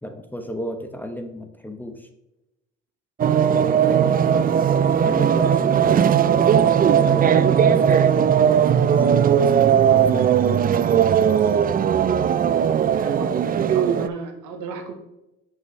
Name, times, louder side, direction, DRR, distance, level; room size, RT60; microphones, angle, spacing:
voice 1, 0.0-2.1 3.5-4.3 5.0-6.4 6.7-8.6 8.9-10.4, equal, 5° left, 6 dB, 1.0 m, -33 dB
sound 1, 3.2-14.1, right 8 dB, 30° right, 0.4 m, -18 dB
voice 2, 3.7-4.4 12.9-14.9, right 5 dB, 75° right, 5 dB, 1.3 m, -34 dB
7.8 x 6.0 x 3.2 m, 0.95 s
supercardioid pair, 65°, 31 cm